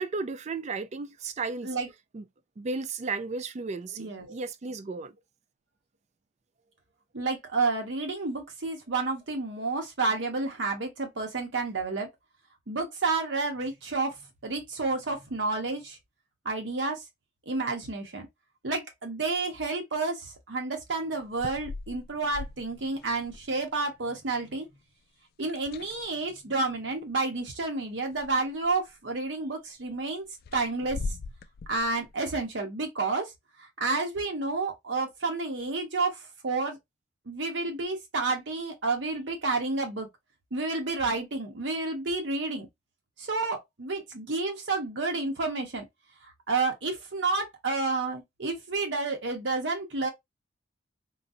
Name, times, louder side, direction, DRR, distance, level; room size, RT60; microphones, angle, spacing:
voice 1, 0.0-1.7 2.1-2.2 2.6-5.1, right 4 dB, 35° right, 0.4 m, -34 dB
voice 2, 4.0-4.3 7.1-12.1 12.7-16.0 16.4-17.0 17.5-18.3 18.6-24.7 25.4-30.2 30.5-31.0 31.7-33.3 33.6-36.8 37.3-40.1 40.5-42.7 43.2-45.8 46.2-50.1, right 3 dB, 70° right, 0.9 m, -30 dB
sound 1, 21.2-23.7 25.4-26.3 27.5-27.6 28.0-28.9 30.4-32.1, left 3 dB, 55° left, 0.3 m, -40 dB
3.9 x 2.2 x 2.6 m
head